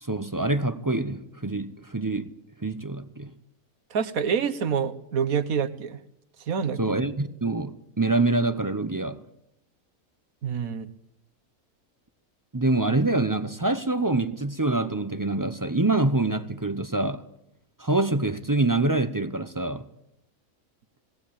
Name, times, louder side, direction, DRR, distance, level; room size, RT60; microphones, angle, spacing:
voice 1, 0.0-2.3 2.6-3.3 6.8-9.2 12.5-17.2 17.8-19.8, right 2 dB, 25° right, 0.5 m, -25 dB
voice 2, 3.9-6.0 6.5-6.8 10.4-10.9, right 7 dB, 70° right, 1.6 m, -26 dB
18.0 x 18.0 x 8.8 m
omnidirectional pair, 1.6 m